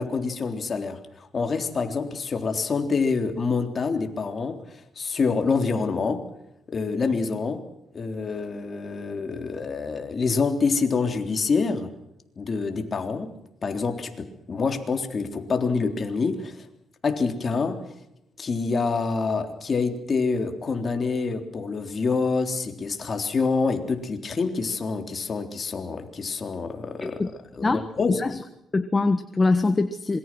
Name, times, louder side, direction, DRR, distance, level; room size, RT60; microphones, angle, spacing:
voice 1, 0.0-6.2 6.7-7.6 7.9-11.9 12.4-13.3 13.6-16.7 17.0-17.8 18.4-27.2 27.5-28.2, left 4 dB, 40° left, 6 dB, 3.6 m, -26 dB
voice 2, 28.7-30.2, left 3 dB, 25° left, 9 dB, 1.4 m, -23 dB
26.5 x 23.0 x 6.2 m, 0.84 s
cardioid pair, 90°, 0 cm